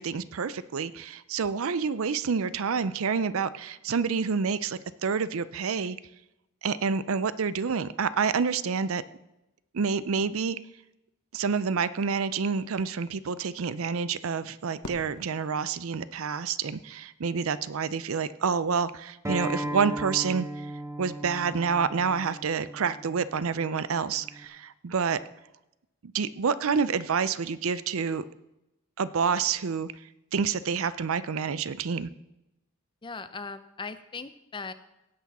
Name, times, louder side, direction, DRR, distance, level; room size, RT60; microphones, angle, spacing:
voice 1, 0.0-6.0 6.6-9.0 9.7-10.6 11.3-20.7 21.0-25.2 26.0-28.2 29.0-29.9 30.3-32.1, right 5 dB, 70° right, 15 dB, 0.5 m, -28 dB
Fireworks, 14.8-17.0, left 2 dB, 70° left, 1.3 m, -46 dB
Acoustic guitar, 19.2-24.4, right 1 dB, 15° right, 1.0 m, -37 dB
voice 2, 33.0-34.7, left 4 dB, 20° left, 12 dB, 0.5 m, -39 dB
16.5 x 8.3 x 4.2 m, 0.92 s
head